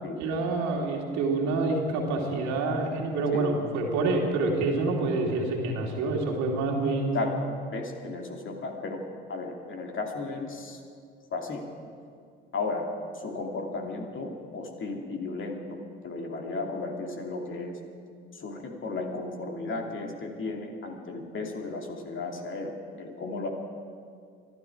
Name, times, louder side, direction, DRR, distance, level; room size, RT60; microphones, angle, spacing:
voice 1, 0.2-7.2, right 3 dB, 65° right, 0 dB, 2.6 m, -27 dB
voice 2, 7.1-10.8 11.3-11.6 12.5-12.9 13.1-17.8 18.3-22.7 23.0-23.5, left 3 dB, 40° left, 1 dB, 2.6 m, -34 dB
23.5 x 12.0 x 4.8 m, 2.2 s
hypercardioid pair, 60°, 30 cm